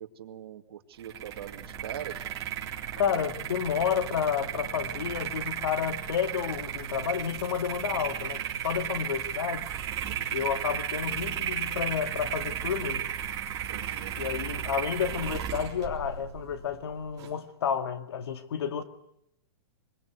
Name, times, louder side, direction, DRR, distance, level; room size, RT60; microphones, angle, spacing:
voice 1, 0.0-2.2 3.0-3.2 10.0-10.3 13.7-14.2, right 10 dB, 65° right, 2.2 m, -42 dB
sound 1, 1.0-17.3, right 9 dB, 25° right, 3.6 m, -35 dB
voice 2, 3.0-9.7 10.3-13.0 14.2-18.8, left 8 dB, 75° left, 2.0 m, -30 dB
22.0 x 22.0 x 8.2 m
hypercardioid pair, 160°, 14 cm